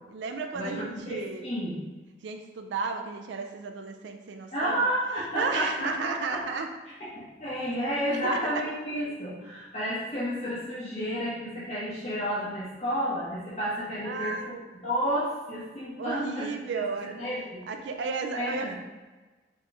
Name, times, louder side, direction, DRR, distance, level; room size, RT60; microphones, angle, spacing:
voice 1, 0.1-1.5 2.2-4.9 5.4-6.7 8.1-8.5 14.0-14.6 16.0-17.1 17.7-18.7, right 4 dB, 80° right, 4 dB, 0.4 m, -33 dB
voice 2, 1.1-1.8 4.5-6.4 7.2-14.3 14.8-16.5 16.9-17.6 18.3-18.7, equal, 35° left, -9 dB, 1.0 m, -31 dB
4.2 x 3.0 x 3.3 m, 1.3 s
head